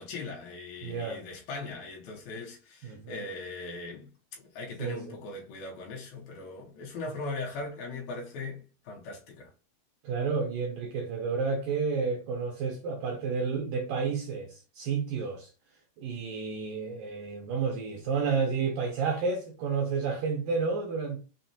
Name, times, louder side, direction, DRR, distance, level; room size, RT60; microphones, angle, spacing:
voice 1, 0.0-4.1 4.4-9.5, left 3 dB, 80° left, 2.5 m, -39 dB
voice 2, 0.8-1.2 2.8-3.2 4.8-5.2 10.0-15.5 16.0-21.2, right 5 dB, 80° right, 1.9 m, -31 dB
6.1 x 2.0 x 2.7 m
omnidirectional pair, 4.4 m